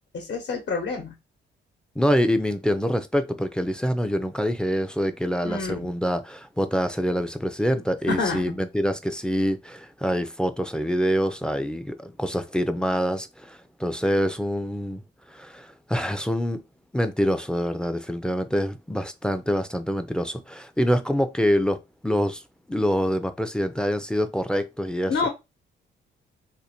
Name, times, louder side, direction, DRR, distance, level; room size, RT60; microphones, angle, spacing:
voice 1, 0.1-1.1 5.4-5.9 8.1-8.5 25.1-25.3, left 4 dB, 60° left, 1.1 m, -27 dB
voice 2, 2.0-15.0 15.3-16.6 16.9-22.4 22.7-25.1, equal, 5° left, 0.4 m, -25 dB
2.6 x 2.5 x 4.2 m
cardioid pair, 90°, 20 cm